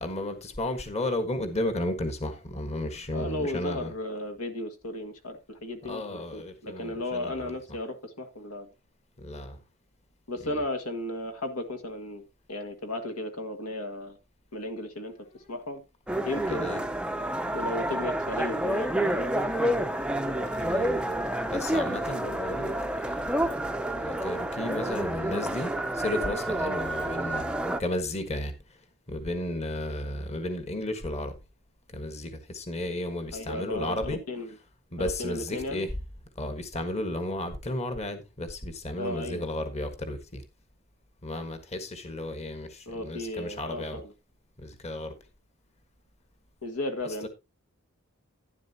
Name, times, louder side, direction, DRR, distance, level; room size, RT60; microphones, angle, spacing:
voice 1, 0.0-3.9 5.9-7.5 9.2-9.6 10.4-10.6 16.5-16.8 20.5-21.0 21.5-22.7 23.1-23.3 24.0-28.5 29.1-31.3 31.9-34.2 34.9-35.9 36.4-40.4 41.2-44.0 44.6-45.1 47.2-47.3, left 1 dB, 30° left, 1.4 m, -33 dB
voice 2, 3.1-8.7 10.3-12.2 12.5-14.2 14.5-15.8 16.3-16.8 17.5-19.8 20.3-20.5 33.3-34.6 35.0-35.9 39.0-39.5 42.9-44.1 46.6-47.3, left 1 dB, 80° left, 1.8 m, -35 dB
sound 1, 16.1-27.8, right 1 dB, 5° right, 0.5 m, -29 dB
11.5 x 10.5 x 2.8 m
head